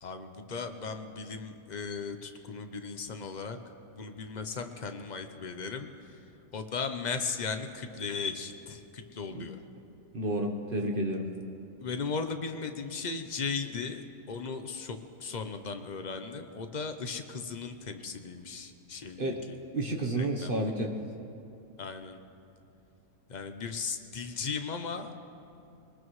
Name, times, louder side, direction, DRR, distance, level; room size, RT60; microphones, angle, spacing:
voice 1, 0.0-3.6 3.9-5.9 6.5-9.6 11.8-19.6 20.2-20.6 21.8-22.2 23.3-25.1, left 5 dB, 50° left, 7 dB, 0.5 m, -37 dB
voice 2, 10.1-11.3 19.2-19.4 19.7-20.9, right 1 dB, 35° right, 2 dB, 1.0 m, -30 dB
22.5 x 20.0 x 3.2 m, 2.7 s
omnidirectional pair, 1.8 m